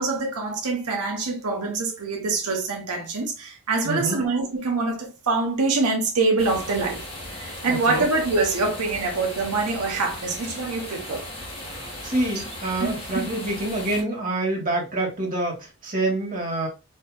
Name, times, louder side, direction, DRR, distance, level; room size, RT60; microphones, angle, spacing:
voice 1, 0.0-11.3 12.3-12.4 12.8-13.0, right 3 dB, 90° right, 0.9 m, -25 dB
voice 2, 3.8-4.2 7.7-8.1 11.7-16.7, right 2 dB, 35° right, 1.4 m, -27 dB
sound 1, 6.4-14.0, left 1 dB, 25° left, 1.6 m, -37 dB
4.5 x 2.7 x 2.2 m
head